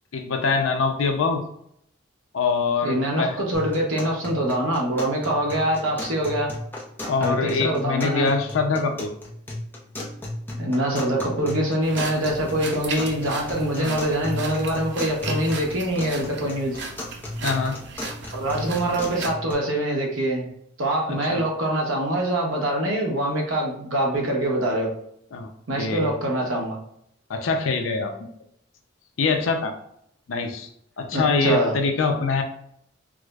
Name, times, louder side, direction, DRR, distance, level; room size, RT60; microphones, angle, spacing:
voice 1, 0.1-1.4 2.3-3.4 7.1-9.1 13.8-14.0 17.4-17.8 21.1-21.4 25.3-25.5 25.8-26.1 27.3-28.3 29.2-29.7 30.3-30.7 31.0-32.4, left 4 dB, 75° left, 5 dB, 0.5 m, -24 dB
voice 2, 2.8-6.5 7.2-8.3 10.6-16.8 18.3-20.5 20.8-24.9 25.7-26.8 31.1-31.7, right 1 dB, 75° right, 0 dB, 0.9 m, -24 dB
sound 1, 3.5-19.5, left 1 dB, 10° left, 0.5 m, -35 dB
sound 2, 11.8-19.3, right 4 dB, 55° right, 0.5 m, -36 dB
4.8 x 2.0 x 2.3 m, 0.72 s
head